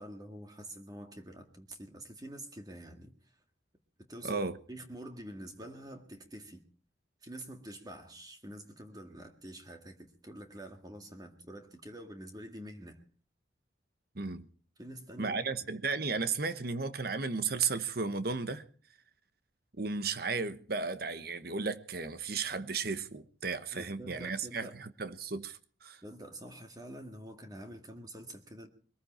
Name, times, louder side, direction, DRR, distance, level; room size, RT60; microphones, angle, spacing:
voice 1, 0.0-3.1 4.1-4.4 4.7-6.6 7.2-13.0 14.8-15.4 23.7-24.8 26.0-28.7, right 1 dB, 20° right, 1.9 m, -47 dB
voice 2, 4.2-4.6 14.1-14.5 15.2-18.6 19.8-26.0, right 4 dB, 50° right, 1.2 m, -34 dB
22.0 x 14.5 x 4.4 m
head